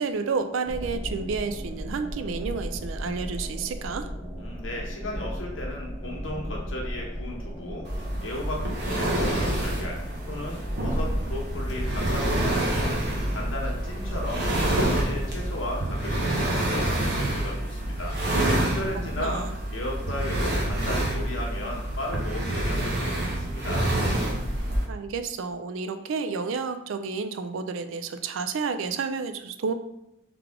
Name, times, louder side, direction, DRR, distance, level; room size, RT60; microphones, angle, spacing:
voice 1, 0.0-4.1 19.2-19.5 24.9-29.7, right 5 dB, 75° right, 9 dB, 0.4 m, -30 dB
sound 1, 0.6-15.5, equal, ahead, 0.7 m, -35 dB
voice 2, 4.4-10.0 10.3-13.0 13.3-19.4 19.7-23.9, left 1 dB, 70° left, -1 dB, 1.0 m, -35 dB
sound 2, 7.8-24.8, right 1 dB, 60° right, 0.8 m, -27 dB
3.6 x 3.3 x 3.5 m, 0.83 s
head